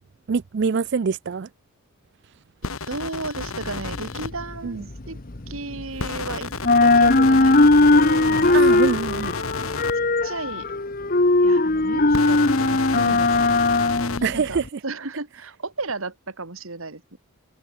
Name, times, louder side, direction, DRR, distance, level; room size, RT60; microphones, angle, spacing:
voice 1, 0.3-1.5 4.6-4.8 8.5-9.3 14.2-14.6, right 5 dB, 55° right, 0.4 m, -24 dB
sound 1, 2.6-4.3 6.0-9.9 12.1-14.2, left 4 dB, 75° left, 1.6 m, -31 dB
voice 2, 2.9-4.8 5.1-5.2 5.5-6.5 6.8-8.8 10.2-10.7 11.4-13.5 14.3-17.2, right 3 dB, 70° right, 2.2 m, -34 dB
sound 2, 3.4-6.3 6.5-14.7, left 2 dB, 40° left, 1.1 m, -19 dB
head